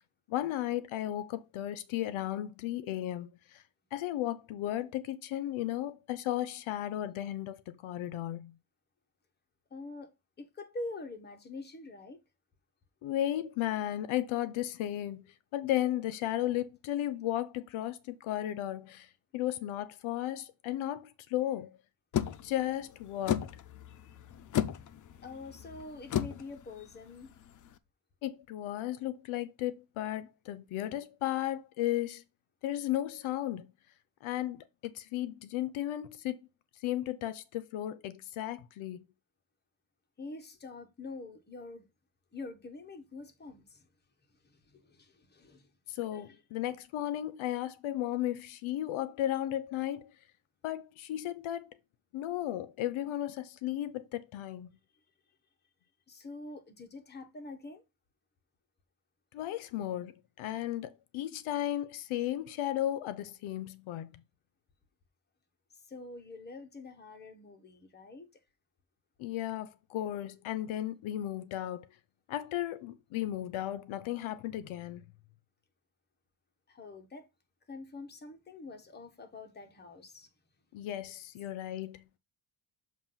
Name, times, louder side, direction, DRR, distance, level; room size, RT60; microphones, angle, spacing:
voice 1, 0.3-3.6 3.9-8.5 13.0-15.2 15.5-21.7 22.1-23.5 28.2-32.2 32.6-33.7 34.2-36.4 36.8-39.0 45.9-50.1 50.6-51.7 52.1-54.7 59.3-64.2 69.2-71.9 72.3-75.0 80.7-82.0, left 13 dB, 80° left, 0.7 m, -35 dB
voice 2, 9.7-12.2 25.2-27.4 40.2-41.9 42.3-43.8 44.4-45.7 46.1-46.4 56.1-57.8 65.8-68.4 76.7-77.3 77.7-80.3, left 2 dB, 20° left, 1.1 m, -45 dB
sound 1, 22.1-27.7, left 10 dB, 40° left, 0.5 m, -35 dB
7.2 x 2.6 x 5.6 m
cardioid pair, 150°, 47 cm